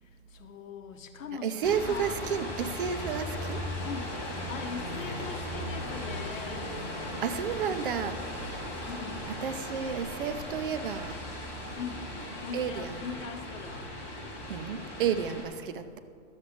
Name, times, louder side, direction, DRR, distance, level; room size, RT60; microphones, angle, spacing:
voice 1, 0.0-2.3 3.8-4.1 4.5-6.9 7.6-8.3 8.8-9.3 11.7-12.1 12.4-13.9, left 6 dB, 65° left, 4 dB, 1.0 m, -41 dB
voice 2, 1.4-3.6 7.2-8.2 9.4-11.2 12.5-13.0 14.5-16.0, right 7 dB, 40° right, 10 dB, 0.5 m, -31 dB
sound 1, 1.6-15.4, left 1 dB, 5° left, 0.5 m, -37 dB
12.5 x 7.2 x 5.0 m, 2.3 s
hypercardioid pair, 165°, 42 cm